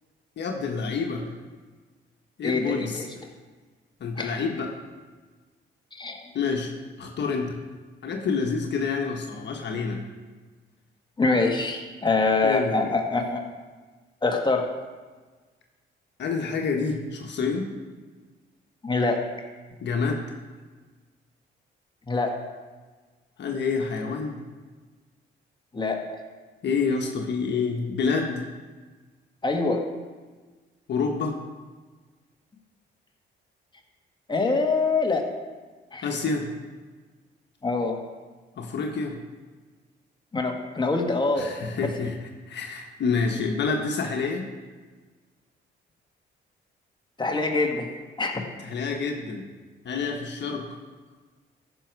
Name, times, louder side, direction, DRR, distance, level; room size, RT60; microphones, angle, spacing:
voice 1, 0.4-1.3 2.4-3.0 4.0-4.7 6.3-6.7 7.0-7.6 8.0-10.0 12.4-13.0 16.2-17.7 19.8-20.2 23.4-24.4 26.6-28.4 30.9-31.4 36.0-36.5 38.6-39.2 41.4-42.2 42.5-44.5 48.6-49.4 49.8-50.8, left 5 dB, 60° left, 2 dB, 1.4 m, -28 dB
voice 2, 2.4-3.1 4.2-4.3 5.9-6.2 11.2-13.4 14.2-14.6 18.8-19.2 22.1-22.3 25.7-26.0 29.4-29.8 34.3-35.3 35.9-36.1 37.6-38.0 40.3-41.5 47.2-47.9 48.2-48.4, left 3 dB, 25° left, 2 dB, 1.7 m, -24 dB
14.5 x 6.3 x 4.7 m, 1.4 s
cardioid pair, 90°, 20 cm